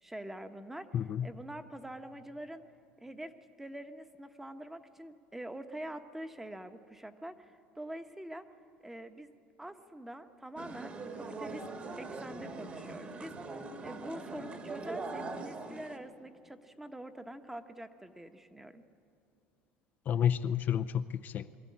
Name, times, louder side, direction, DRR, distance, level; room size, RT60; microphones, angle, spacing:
voice 1, 0.0-2.6 3.0-3.3 3.6-8.4 8.8-9.3 9.6-11.7 12.0-13.6 13.8-18.8, right 1 dB, 10° right, 8 dB, 1.0 m, -45 dB
voice 2, 0.9-1.3 20.1-21.6, left 9 dB, 45° left, 10 dB, 0.5 m, -30 dB
sound 1, 10.6-16.0, right 3 dB, 35° right, 1.9 m, -42 dB
23.0 x 13.5 x 8.5 m, 2.6 s
supercardioid pair, 110°, 4 cm